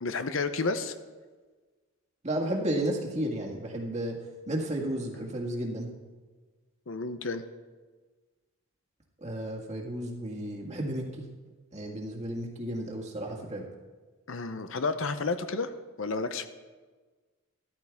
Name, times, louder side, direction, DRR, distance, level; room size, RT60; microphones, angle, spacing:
voice 1, 0.0-0.9 6.9-7.4 14.3-15.7 16.0-16.5, left 3 dB, 65° left, 10 dB, 0.7 m, -31 dB
voice 2, 2.2-4.2 4.5-5.9 9.2-11.3 11.7-13.7, right 1 dB, 30° right, -1 dB, 1.8 m, -33 dB
13.5 x 13.5 x 3.5 m, 1.4 s
head